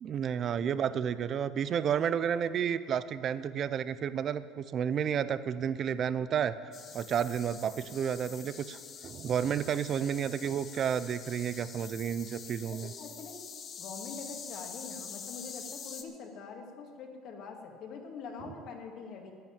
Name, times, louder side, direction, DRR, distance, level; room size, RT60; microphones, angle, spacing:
voice 1, 0.0-6.6 6.9-12.9, right 8 dB, 50° right, 15 dB, 0.6 m, -31 dB
sound 1, 6.7-16.0, left 6 dB, 45° left, 1.3 m, -46 dB
voice 2, 12.7-13.4 13.8-19.3, left 5 dB, 60° left, 3 dB, 2.2 m, -44 dB
10.5 x 9.7 x 8.9 m, 2.2 s
supercardioid pair, 95°, 0 cm